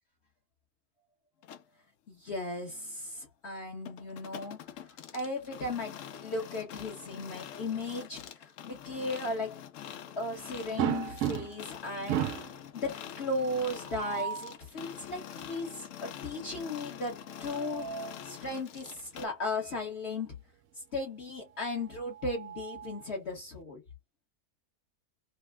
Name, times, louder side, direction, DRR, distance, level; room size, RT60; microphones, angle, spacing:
sound 1, 1.4-1.6 3.9-19.3, left 9 dB, 65° left, 0.8 m, -45 dB
voice 1, 2.1-4.9 5.1-9.6 10.2-12.3 12.7-17.9 18.2-20.4 20.9-23.8, left 2 dB, 45° left, 1.2 m, -36 dB
sound 2, 10.8-11.7 12.1-12.6 13.8-14.5 17.2-18.2 19.7-19.8 20.2-20.3 21.8-23.1, right 10 dB, 70° right, 0.9 m, -35 dB
3.2 x 2.1 x 3.3 m
omnidirectional pair, 1.7 m